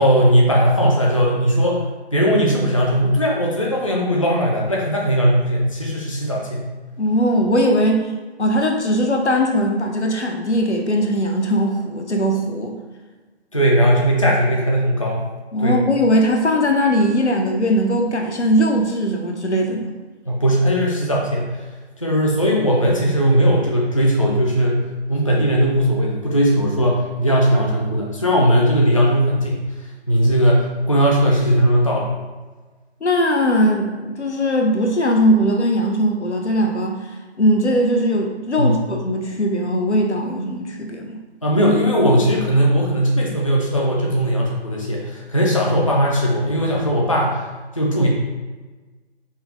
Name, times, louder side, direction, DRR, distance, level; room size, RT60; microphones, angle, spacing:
voice 1, 0.0-1.8 2.1-6.6 13.5-15.3 15.6-15.8 20.3-21.6 22.0-24.8 25.1-29.6 30.1-32.1 38.6-38.9 41.4-47.4 47.8-48.1, equal, 30° left, -2 dB, 0.5 m, -18 dB
voice 2, 7.0-8.1 8.4-12.8 15.5-19.9 33.0-37.0 37.4-41.2, equal, 80° left, 3 dB, 0.9 m, -19 dB
5.6 x 2.1 x 3.8 m, 1.3 s
figure-of-eight pair, 160°, 33 cm